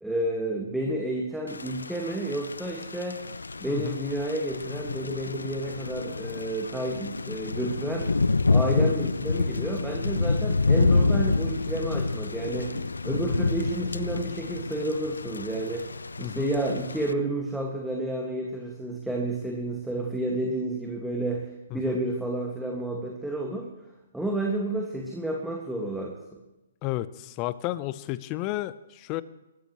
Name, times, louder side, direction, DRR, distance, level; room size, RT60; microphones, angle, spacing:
voice 1, 0.0-3.2 3.6-8.1 8.5-12.8 13.0-23.7 24.1-26.2, right 1 dB, 5° right, -1 dB, 1.9 m, -31 dB
Thunder / Rain, 1.5-17.1, left 3 dB, 90° left, 0.5 m, -28 dB
voice 2, 3.7-4.0 11.0-11.2 13.1-13.4 16.2-16.5 21.7-22.0 26.8-29.2, left 16 dB, 35° left, 16 dB, 0.8 m, -32 dB
22.5 x 13.5 x 3.1 m, 1.0 s
hypercardioid pair, 130°, 0 cm